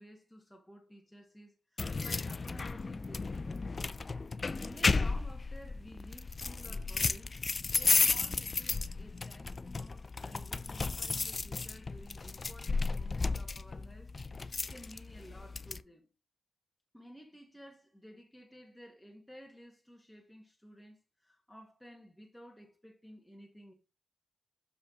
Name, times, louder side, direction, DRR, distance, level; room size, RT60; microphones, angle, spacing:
voice 1, 0.0-3.7 4.6-14.1 14.4-16.1 16.9-23.7, equal, 5° left, 2.0 m, -54 dB
sound 1, 1.8-15.8, left 4 dB, 40° left, 0.5 m, -33 dB
6.8 x 5.1 x 4.0 m
cardioid pair, 60°, 0 cm